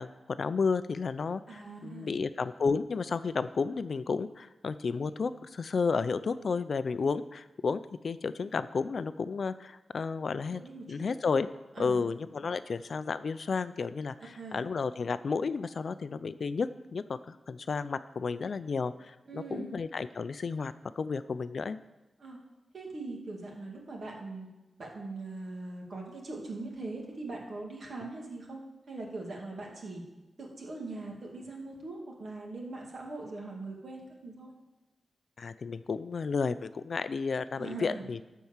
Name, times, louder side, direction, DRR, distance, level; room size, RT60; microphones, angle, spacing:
voice 1, 0.0-10.6 10.9-11.5 11.8-21.8 35.4-38.2, left 5 dB, 60° left, 14 dB, 0.4 m, -32 dB
voice 2, 1.5-2.1 10.5-11.0 11.7-12.0 14.4-14.6 19.3-19.7 22.2-22.4 22.7-24.5 24.8-28.6 28.9-30.0 30.4-34.5 37.5-38.1, right 3 dB, 55° right, -1 dB, 2.3 m, -41 dB
12.0 x 4.6 x 7.2 m, 1.1 s
wide cardioid pair, 130°, 0 cm